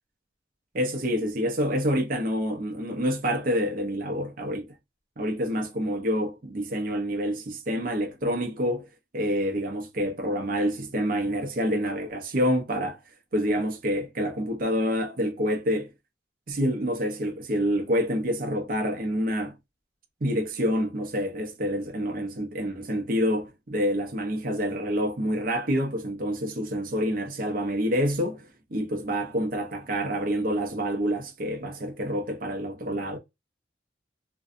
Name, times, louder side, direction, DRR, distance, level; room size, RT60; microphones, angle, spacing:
voice 1, 0.7-4.7 5.2-8.9 9.1-13.0 13.3-15.9 16.5-19.5 20.2-33.2, equal, 50° right, 0.6 m, -27 dB
2.6 x 2.2 x 2.4 m
head